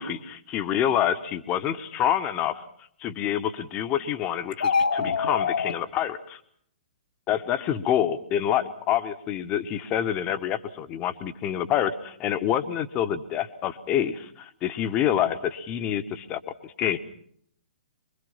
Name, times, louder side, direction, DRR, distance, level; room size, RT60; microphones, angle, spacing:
voice 1, 0.0-2.6 3.0-6.4 7.3-17.0, left 10 dB, 25° left, 11 dB, 1.3 m, -27 dB
sound 1, 4.5-5.7, left 5 dB, 60° left, 1.7 m, -24 dB
24.5 x 23.5 x 5.7 m, 0.66 s
figure-of-eight pair, 115°, 5 cm